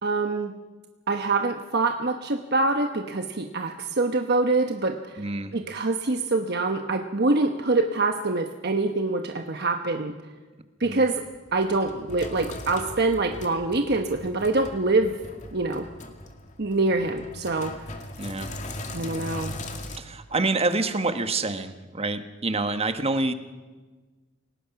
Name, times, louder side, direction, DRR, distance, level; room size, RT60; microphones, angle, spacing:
voice 1, 0.0-0.5 1.1-5.2 5.5-10.1 10.8-11.2 11.5-15.2 15.5-15.9 16.6-17.7 18.9-19.6, right 3 dB, 60° right, 5 dB, 1.2 m, -25 dB
voice 2, 5.2-5.5 10.8-11.0 18.2-18.5 19.9-23.3, right 3 dB, 30° right, 9 dB, 1.3 m, -27 dB
Sink (filling or washing), 11.1-20.0, left 1 dB, 40° left, 2.3 m, -39 dB
29.0 x 18.5 x 5.9 m, 1.3 s
head